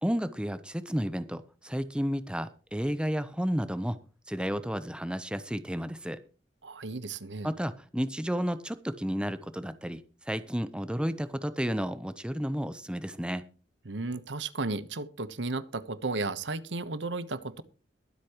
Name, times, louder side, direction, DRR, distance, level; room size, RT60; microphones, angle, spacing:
voice 1, 0.0-4.0 4.3-6.2 7.4-10.0 10.3-13.5, equal, 5° right, 0.9 m, -32 dB
voice 2, 6.6-7.5 13.8-17.6, right 3 dB, 75° right, 1.2 m, -34 dB
22.0 x 8.4 x 3.1 m
head